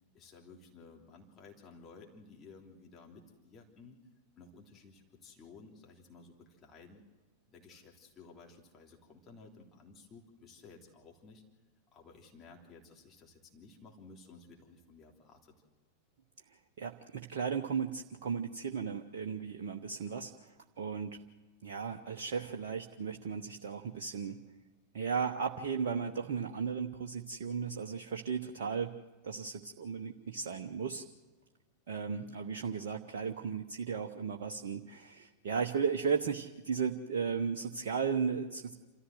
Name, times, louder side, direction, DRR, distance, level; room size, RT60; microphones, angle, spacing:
voice 1, 0.1-4.0 4.4-7.0 7.5-11.4 11.9-15.6, left 4 dB, 25° left, 1 dB, 3.3 m, -55 dB
voice 2, 16.5-21.2 21.6-24.4 24.9-28.9 29.2-31.0 31.9-38.7, right 6 dB, 55° right, 4 dB, 0.9 m, -35 dB
27.5 x 14.0 x 7.8 m, 1.3 s
figure-of-eight pair, 90°, 0 cm